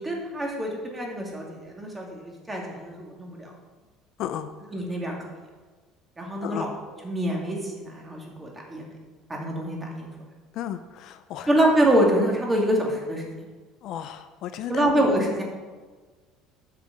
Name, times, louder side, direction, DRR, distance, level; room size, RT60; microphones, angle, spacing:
voice 1, 0.0-3.5 4.7-5.3 6.2-6.7 7.0-8.9 9.3-10.1 11.5-13.5 14.7-15.4, right 1 dB, 15° right, -1 dB, 2.3 m, -25 dB
voice 2, 4.2-4.5 6.4-6.7 10.5-11.5 13.8-15.1, left 10 dB, 55° left, 10 dB, 0.5 m, -34 dB
9.2 x 4.9 x 7.7 m, 1.4 s
cardioid pair, 130°, 0 cm